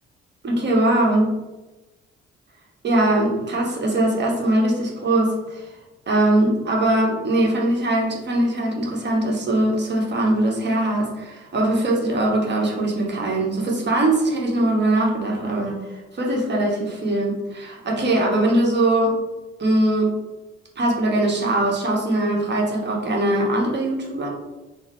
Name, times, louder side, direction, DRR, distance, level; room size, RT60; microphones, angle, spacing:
voice 1, 0.4-1.3 2.8-5.7 6.1-19.2 19.6-20.1 20.8-24.3, right 1 dB, 35° right, -1 dB, 1.0 m, -21 dB
3.8 x 2.0 x 3.1 m, 1.1 s
figure-of-eight pair, 45°, 30 cm